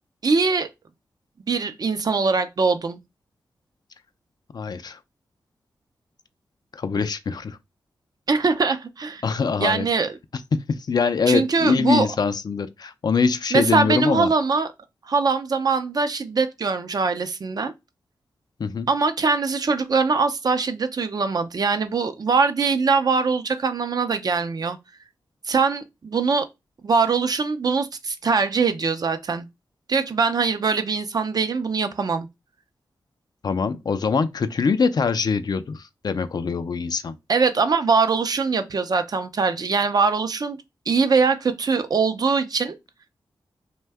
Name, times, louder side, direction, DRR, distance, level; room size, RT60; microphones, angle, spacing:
voice 1, 0.2-0.7 1.5-3.0 8.3-9.2 9.6-10.2 11.3-12.1 13.5-14.7 15.1-17.7 18.9-24.8 25.5-26.5 26.8-29.5 29.9-32.3 37.3-40.6 40.9-42.7, right 4 dB, 55° right, 0.5 m, -22 dB
voice 2, 4.5-5.0 6.7-7.6 9.2-9.9 10.7-14.3 18.6-18.9 33.4-37.1, left 5 dB, 55° left, 0.4 m, -23 dB
2.6 x 2.2 x 3.3 m
cardioid pair, 40°, 8 cm